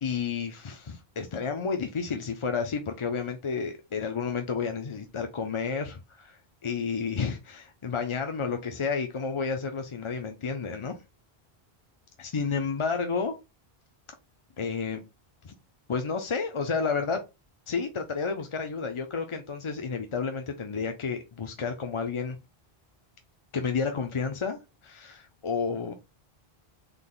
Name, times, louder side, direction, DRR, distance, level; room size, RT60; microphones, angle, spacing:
voice 1, 0.0-11.0 12.2-13.4 14.6-15.0 15.4-15.5 15.9-17.3 17.7-22.4 23.5-25.9, left 5 dB, 40° left, 0.5 m, -31 dB
3.8 x 3.4 x 2.3 m
omnidirectional pair, 1.0 m